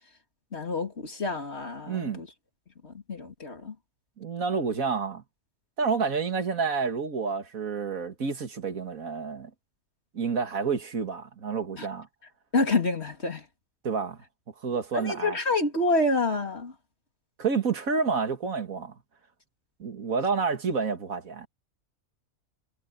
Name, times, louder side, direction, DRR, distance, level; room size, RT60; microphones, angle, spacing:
voice 1, 0.5-2.3 2.8-3.7 11.8-11.9 12.5-13.4 14.9-16.7, left 2 dB, 50° left, 3.0 m, -28 dB
voice 2, 1.8-2.2 4.2-5.2 5.8-9.5 10.1-12.1 13.8-14.2 14.6-15.4 17.4-18.9 19.8-21.5, right 5 dB, 75° right, 2.4 m, -29 dB
omnidirectional pair, 1.5 m